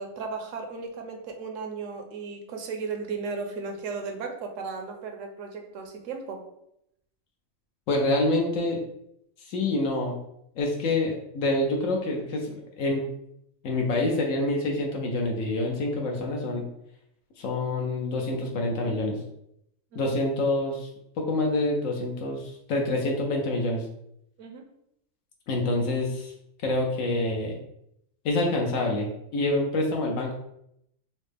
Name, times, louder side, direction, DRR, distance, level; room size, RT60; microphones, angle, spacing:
voice 1, 0.0-6.4 19.9-20.1 24.4-24.6, right 4 dB, 75° right, 4 dB, 1.0 m, -35 dB
voice 2, 7.9-8.8 9.4-10.2 10.6-13.0 13.6-16.6 17.4-19.2 19.9-20.9 21.2-23.8 25.5-26.3 26.6-27.6 28.2-30.3, left 2 dB, 80° left, 0 dB, 1.1 m, -27 dB
5.6 x 2.1 x 3.3 m, 0.77 s
omnidirectional pair, 1.3 m